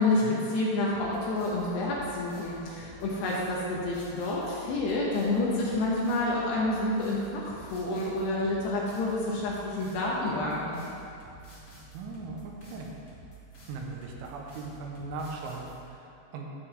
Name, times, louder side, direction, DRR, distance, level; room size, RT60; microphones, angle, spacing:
voice 1, 0.0-0.4 11.9-12.9 13.7-16.5, right 3 dB, 85° right, 0 dB, 3.3 m, -39 dB
voice 2, 0.5-10.8, left 2 dB, 75° left, -4 dB, 2.8 m, -29 dB
sound 1, 0.9-15.8, right 2 dB, 45° left, 1.4 m, -50 dB
12.0 x 7.5 x 3.5 m, 2.7 s
omnidirectional pair, 5.5 m